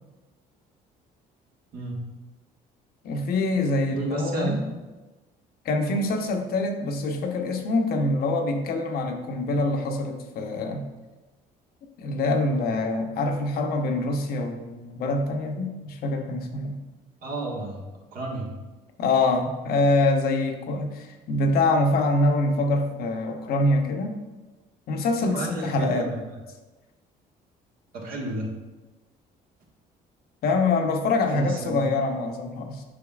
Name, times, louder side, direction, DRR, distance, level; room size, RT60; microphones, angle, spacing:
voice 1, 3.0-4.6 5.6-10.9 12.0-16.8 19.0-24.2 24.9-26.1 30.4-32.8, left 2 dB, 65° left, 3 dB, 0.9 m, -25 dB
voice 2, 3.9-4.6 17.2-18.5 25.2-26.1 27.9-28.5 31.3-31.8, right 2 dB, 60° right, -1 dB, 1.6 m, -31 dB
8.4 x 5.7 x 2.4 m, 1.1 s
cardioid pair, 110°, 17 cm